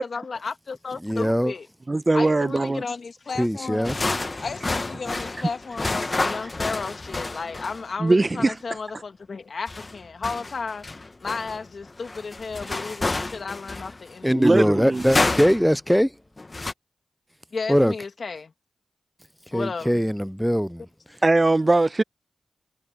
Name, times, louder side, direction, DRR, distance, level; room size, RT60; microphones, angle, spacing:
voice 1, 0.0-1.7 2.1-10.9 11.2-14.5 17.5-18.5 19.5-20.0, left 4 dB, 65° left, 1.8 m, -33 dB
voice 2, 1.0-1.5 3.4-4.0 14.2-16.1 17.7-17.9 19.5-21.2, equal, ahead, 0.3 m, -21 dB
voice 3, 1.9-2.8 8.0-8.6 14.3-15.1 21.2-22.0, right 2 dB, 35° right, 1.0 m, -20 dB
sound 1, 3.8-7.9 9.7-14.1 14.9-15.8 16.4-16.7, left 2 dB, 40° left, 1.0 m, -29 dB
cardioid pair, 45°, 0 cm